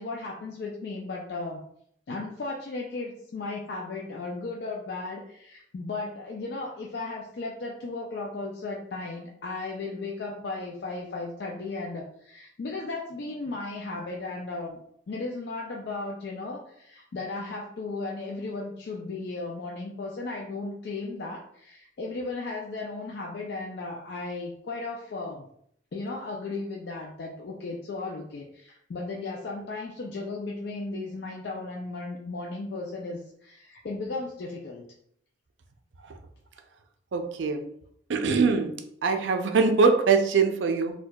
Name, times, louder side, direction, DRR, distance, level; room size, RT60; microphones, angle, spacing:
voice 1, 0.0-1.6 2.1-14.8 15.1-25.4 25.9-34.8, left 3 dB, 65° left, -1 dB, 0.4 m, -35 dB
voice 2, 37.1-37.6 38.1-38.7 39.0-40.9, right 4 dB, 90° right, 6 dB, 0.5 m, -22 dB
4.4 x 2.3 x 2.3 m, 0.69 s
head